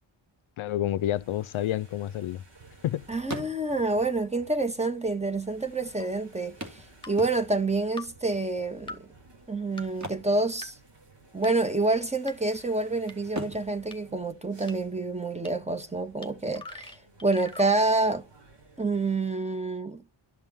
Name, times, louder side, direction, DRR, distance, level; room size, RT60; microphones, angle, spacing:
voice 1, 0.6-2.4 2.8-3.1, left 12 dB, 85° left, 0.6 m, -29 dB
sound 1, 0.6-19.2, right 3 dB, 60° right, 3.8 m, -55 dB
sound 2, 1.9-2.9 3.2-4.0 4.9-5.0 5.3-5.4 6.6-7.8 9.8-11.2 11.4-11.7 12.2-12.8 13.3-15.0 17.0-17.1 17.5-17.6, right 1 dB, 35° right, 2.4 m, -41 dB
voice 2, 3.1-9.1 9.5-10.8 11.3-18.2 18.8-20.0, right 2 dB, 15° right, 1.3 m, -28 dB
sound 3, 6.0-6.1 7.0-7.1 8.0-8.1 8.9-9.0 9.8-9.9 10.6-10.7 11.4-11.5 12.3-12.4 13.1-13.2 13.9-14.0 14.7-14.8 15.4-15.5 16.2-16.3 16.5-17.7, left 2 dB, 10° left, 1.9 m, -42 dB
12.5 x 5.6 x 8.9 m
wide cardioid pair, 120°, 47 cm